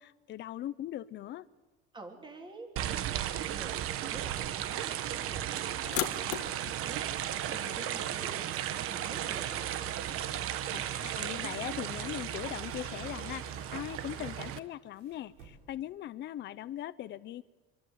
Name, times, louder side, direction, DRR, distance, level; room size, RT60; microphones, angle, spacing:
voice 1, 0.0-1.5 10.7-13.4 13.7-17.4, left 12 dB, 40° left, 16 dB, 0.7 m, -40 dB
voice 2, 1.9-2.7 3.3-3.8 4.1-9.7, right 3 dB, 15° right, 3 dB, 3.3 m, -49 dB
sound 1, 2.8-14.6, right 11 dB, 50° right, 1.2 m, -35 dB
sound 2, 4.0-6.2 6.6-11.9 12.2-16.0, right 4 dB, 75° right, 6.6 m, -59 dB
sound 3, 5.8-14.6, left 13 dB, 65° left, 1.8 m, -44 dB
26.5 x 24.0 x 8.1 m, 1.2 s
cardioid pair, 170°, 29 cm